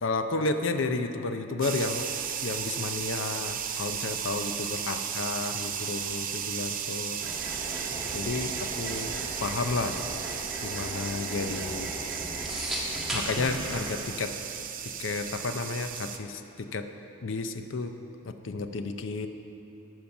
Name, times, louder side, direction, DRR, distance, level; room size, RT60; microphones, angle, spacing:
voice 1, 0.0-2.1 2.4-7.2 8.1-10.0 10.6-11.9 13.1-14.3 15.0-16.9 17.2-17.9 18.2-19.3, left 3 dB, 65° left, 8 dB, 0.6 m, -32 dB
sound 1, 1.6-16.2, right 8 dB, 40° right, 0.5 m, -35 dB
sound 2, 7.2-14.0, right 1 dB, ahead, 1.3 m, -36 dB
14.0 x 5.7 x 5.9 m, 2.9 s
head